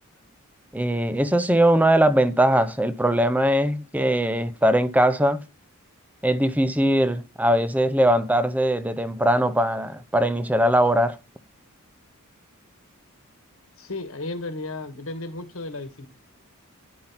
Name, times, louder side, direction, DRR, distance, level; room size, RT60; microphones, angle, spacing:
voice 1, 0.7-5.4 6.2-11.1, right 1 dB, 5° right, 0.6 m, -21 dB
voice 2, 13.8-16.1, left 2 dB, 75° left, 1.6 m, -34 dB
10.5 x 5.4 x 5.7 m
head